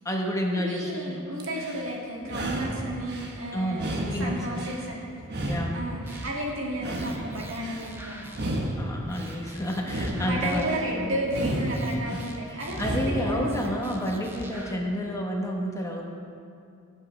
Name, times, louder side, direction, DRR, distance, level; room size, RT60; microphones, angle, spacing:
voice 1, 0.0-1.2 3.5-4.3 5.5-5.8 8.8-11.2 12.5-16.0, equal, 15° left, 0 dB, 1.1 m, -30 dB
voice 2, 0.6-5.1 5.7-8.5 10.2-13.8, right 1 dB, 70° right, -3 dB, 2.1 m, -33 dB
sound 1, 1.4-1.9 2.2-3.4 3.7-4.9 5.2-6.3 6.7-7.8 8.3-9.4 9.8-10.9 11.3-12.3 12.7-13.4, right 1 dB, 55° right, 1.2 m, -32 dB
sound 2, 6.1-6.5 6.9-8.7 9.1-10.9 11.3-13.1 13.4-14.7, right 1 dB, 10° right, 0.8 m, -45 dB
18.0 x 8.4 x 3.3 m, 2.4 s
head